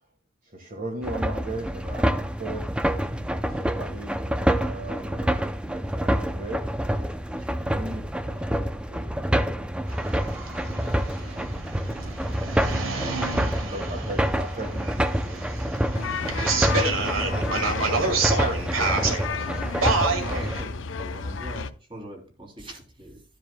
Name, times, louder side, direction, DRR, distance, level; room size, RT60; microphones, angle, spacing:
voice 1, 0.4-6.9 7.3-10.1 10.7-11.3 12.8-15.9 16.4-16.6 17.7-19.8, right 1 dB, 45° right, 1.6 m, -39 dB
sound 1, 1.0-20.6, equal, 5° right, 0.5 m, -27 dB
sound 2, 9.9-20.6, right 4 dB, 90° right, 2.0 m, -29 dB
voice 2, 12.0-12.3 13.0-14.1 16.4-16.6 17.4-18.1 18.3-18.6 20.2-23.2, right 1 dB, 25° right, 2.9 m, -41 dB
sound 3, 15.9-21.7, left 5 dB, 65° left, 0.6 m, -33 dB
13.0 x 10.0 x 2.2 m
head